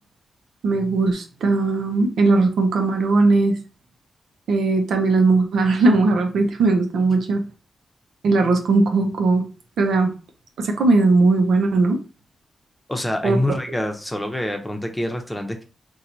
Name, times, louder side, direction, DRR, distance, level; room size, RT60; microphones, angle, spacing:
voice 1, 0.6-3.6 4.5-7.4 8.2-9.4 9.8-10.1 10.6-12.0 13.2-13.4, right 3 dB, 80° right, 4 dB, 0.6 m, -18 dB
voice 2, 12.9-15.6, left 1 dB, 10° left, 4 dB, 0.8 m, -26 dB
2.9 x 2.3 x 3.8 m, 0.35 s
cardioid pair, 55°, 0 cm